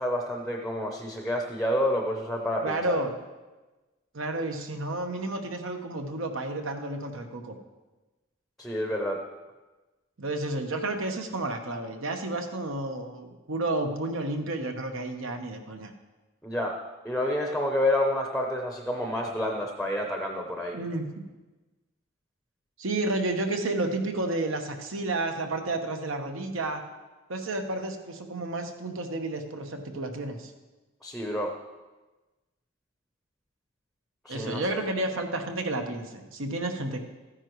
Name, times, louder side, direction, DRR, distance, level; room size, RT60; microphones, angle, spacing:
voice 1, 0.0-3.0 8.6-9.2 16.4-16.8 17.0-20.8 31.0-31.5 34.2-34.8, left 1 dB, ahead, 2 dB, 0.7 m, -29 dB
voice 2, 2.6-3.1 4.1-7.5 10.2-15.9 20.7-21.3 22.8-26.8 27.3-30.5 34.3-37.0, right 2 dB, 70° right, 5 dB, 1.1 m, -31 dB
14.0 x 9.9 x 3.1 m, 1.2 s
head